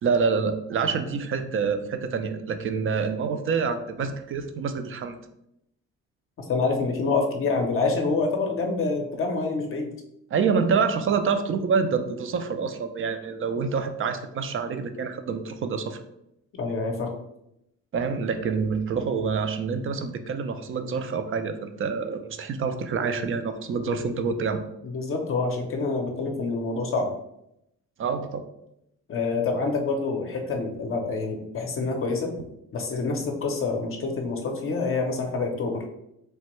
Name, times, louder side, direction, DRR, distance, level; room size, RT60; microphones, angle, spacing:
voice 1, 0.0-5.2 10.3-16.0 17.9-24.6 28.0-28.4, right 5 dB, 45° right, 8 dB, 0.4 m, -27 dB
voice 2, 6.5-9.9 16.5-17.1 24.8-27.1 29.1-32.3 32.7-35.8, left 3 dB, 45° left, 2 dB, 0.6 m, -27 dB
3.2 x 2.1 x 3.0 m, 0.81 s
cardioid pair, 90°, 30 cm